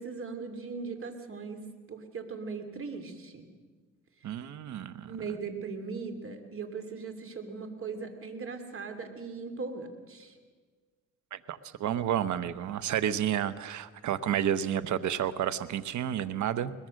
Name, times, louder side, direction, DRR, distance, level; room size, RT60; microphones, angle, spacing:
voice 1, 0.0-1.6 1.9-3.5 5.1-10.3, right 4 dB, 45° right, 7 dB, 2.9 m, -39 dB
voice 2, 4.2-5.1 11.3-16.7, right 10 dB, 70° right, 14 dB, 1.1 m, -31 dB
22.5 x 20.5 x 6.5 m, 1.5 s
cardioid pair, 90°, 30 cm